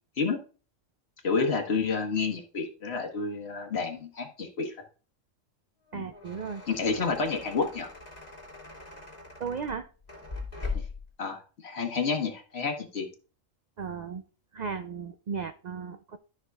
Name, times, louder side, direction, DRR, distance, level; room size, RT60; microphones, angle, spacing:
voice 1, 1.2-4.7 5.9-6.1 6.7-7.9 10.7-10.8 11.2-13.1, left 4 dB, 55° left, 4 dB, 1.5 m, -30 dB
sound 1, 5.9-11.1, left 4 dB, 30° left, 2.7 m, -40 dB
voice 2, 5.9-6.6 9.4-9.9 13.8-14.2 14.5-16.2, right 6 dB, 75° right, 9 dB, 0.4 m, -35 dB
13.0 x 5.8 x 2.3 m, 0.37 s
omnidirectional pair, 1.3 m